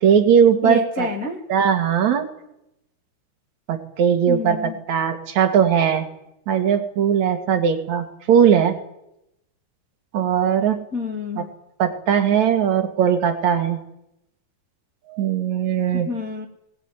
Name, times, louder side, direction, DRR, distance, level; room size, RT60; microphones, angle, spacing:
voice 1, 0.0-1.1 1.5-2.3 3.7-6.0 6.5-8.7 10.1-10.8 11.4-11.5 11.8-13.8 15.1-16.1, right 8 dB, 50° right, 6 dB, 2.8 m, -19 dB
voice 2, 0.6-1.4 4.3-4.8 10.9-11.5 15.9-16.5, left 4 dB, 25° left, 1 dB, 2.0 m, -28 dB
21.0 x 20.5 x 9.5 m, 0.85 s
omnidirectional pair, 4.9 m